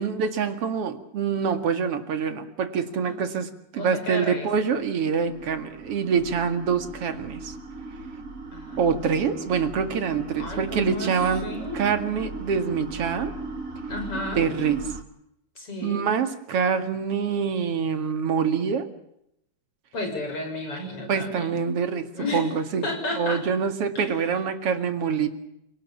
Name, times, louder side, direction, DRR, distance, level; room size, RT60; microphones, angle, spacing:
voice 1, 0.0-7.5 8.8-13.3 14.3-14.8 15.8-18.9 21.1-25.3, right 6 dB, 50° right, 8 dB, 2.9 m, -25 dB
voice 2, 3.8-4.5 8.5-9.4 10.4-11.1 11.4-11.8 13.9-14.5 15.6-16.1 19.9-21.5 22.1-22.5 22.8-23.4 24.0-24.1, left 2 dB, 45° left, 4 dB, 7.7 m, -32 dB
sound 1, 4.7-15.0, right 3 dB, 30° right, 1.9 m, -37 dB
28.5 x 18.5 x 7.4 m, 0.78 s
omnidirectional pair, 3.5 m